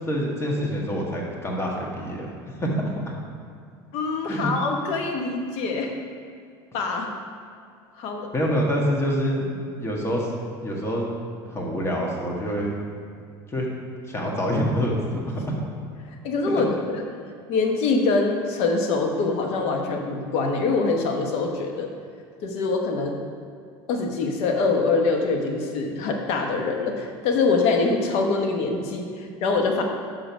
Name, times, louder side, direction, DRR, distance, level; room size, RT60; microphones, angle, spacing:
voice 1, 0.1-2.9 4.2-4.5 8.3-9.5 9.8-10.3 10.6-11.1 11.4-12.7 13.5-13.7 14.1-15.4 16.5-16.6, equal, 25° left, -1 dB, 1.5 m, -26 dB
voice 2, 3.9-5.9 6.7-7.1 8.0-8.3 16.2-17.0 17.5-21.9 22.4-23.1 23.9-29.8, left 3 dB, 65° left, 2 dB, 1.0 m, -24 dB
5.7 x 5.1 x 5.9 m, 2.2 s
supercardioid pair, 105°, 11 cm